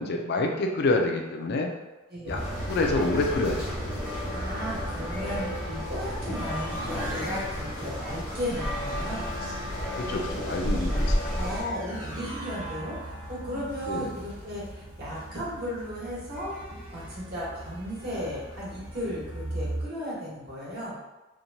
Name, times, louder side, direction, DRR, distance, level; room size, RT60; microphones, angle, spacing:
voice 1, 0.0-1.7 2.3-2.4 2.7-3.7 10.0-11.3 13.9-14.1, left 2 dB, 55° left, 3 dB, 0.4 m, -27 dB
voice 2, 2.1-2.4 4.3-9.3 11.3-16.5 16.9-21.0, equal, 50° right, -8 dB, 1.2 m, -35 dB
sound 1, 2.3-11.6, left 1 dB, 5° right, 0.8 m, -32 dB
sound 2, 2.3-19.9, equal, 85° right, 1.1 m, -38 dB
2.9 x 2.1 x 2.6 m, 1.1 s
head